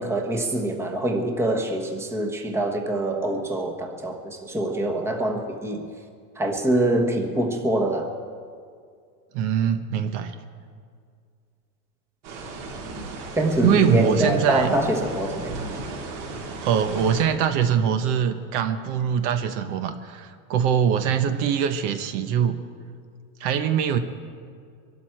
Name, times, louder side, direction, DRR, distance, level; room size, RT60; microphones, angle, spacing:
voice 1, 0.0-5.9 6.4-8.1 13.3-15.5, right 1 dB, 5° right, 3 dB, 1.1 m, -24 dB
voice 2, 9.3-10.3 13.6-14.7 16.6-22.6 23.4-24.0, right 8 dB, 50° right, 8 dB, 1.1 m, -23 dB
sound 1, 12.2-17.2, right 3 dB, 70° right, 4.4 m, -36 dB
23.5 x 12.5 x 4.5 m, 2.2 s
supercardioid pair, 150°, 46 cm